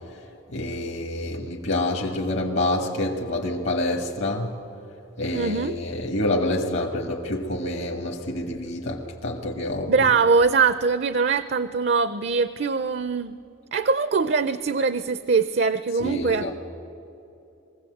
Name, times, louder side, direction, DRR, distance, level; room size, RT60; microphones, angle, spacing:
voice 1, 0.5-4.5 5.2-10.1 16.0-16.5, left 1 dB, 60° left, 2 dB, 1.4 m, -27 dB
voice 2, 5.3-5.7 9.9-13.3 13.7-16.5, right 4 dB, 50° right, 13 dB, 0.5 m, -22 dB
22.0 x 16.0 x 7.9 m, 2.9 s
head